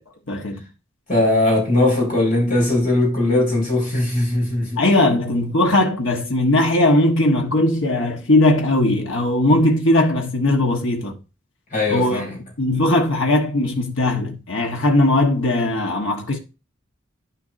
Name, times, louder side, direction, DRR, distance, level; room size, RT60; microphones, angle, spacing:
voice 1, 0.3-0.6 4.8-11.2 11.9-12.2 12.6-16.4, left 1 dB, 65° left, 1.2 m, -19 dB
voice 2, 1.1-4.8 11.7-12.4, left 2 dB, 40° left, 5.1 m, -19 dB
10.5 x 6.8 x 2.6 m
head